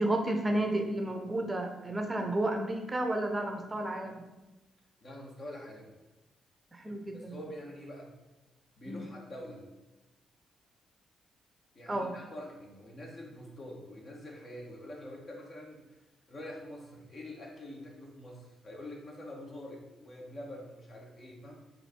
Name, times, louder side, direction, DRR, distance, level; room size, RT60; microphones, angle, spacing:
voice 1, 0.0-4.2 6.7-7.4 8.9-9.0 11.9-12.1, right 1 dB, 25° right, 4 dB, 0.7 m, -32 dB
voice 2, 5.0-5.9 7.1-8.1 8.8-9.6 11.7-15.8 16.3-21.5, left 1 dB, 50° left, -1 dB, 1.2 m, -45 dB
4.4 x 2.7 x 4.4 m, 1.1 s
hypercardioid pair, 40°, 0 cm